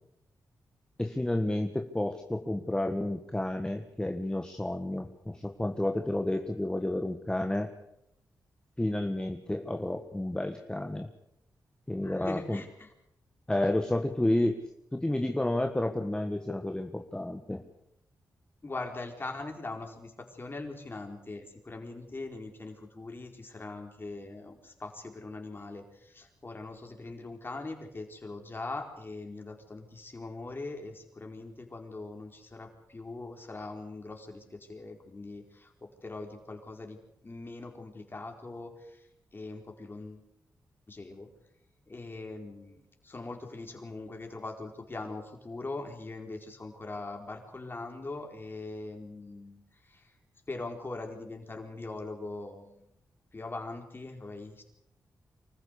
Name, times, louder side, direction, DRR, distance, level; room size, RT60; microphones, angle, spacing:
voice 1, 1.0-7.7 8.8-11.1 11.9-12.6 13.5-14.6 14.9-17.6, left 1 dB, 10° left, 5 dB, 1.5 m, -30 dB
voice 2, 12.0-12.9 18.6-37.0 37.2-40.3 40.9-41.3 41.9-50.2 50.5-52.9 53.3-54.6, left 2 dB, 30° left, 3 dB, 4.6 m, -41 dB
25.0 x 15.0 x 8.5 m, 0.82 s
cardioid pair, 80°, 7 cm